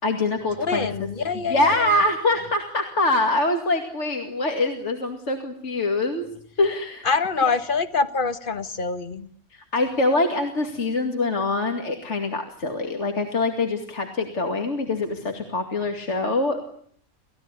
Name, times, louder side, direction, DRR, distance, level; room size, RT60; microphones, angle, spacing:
voice 1, 0.0-0.9 1.3-6.3 6.6-7.1 9.5-16.6, left 2 dB, 55° left, 4 dB, 2.6 m, -24 dB
voice 2, 0.6-2.0 7.0-9.3, left 4 dB, 40° left, 11 dB, 1.6 m, -25 dB
29.5 x 16.0 x 9.7 m, 0.62 s
omnidirectional pair, 1.5 m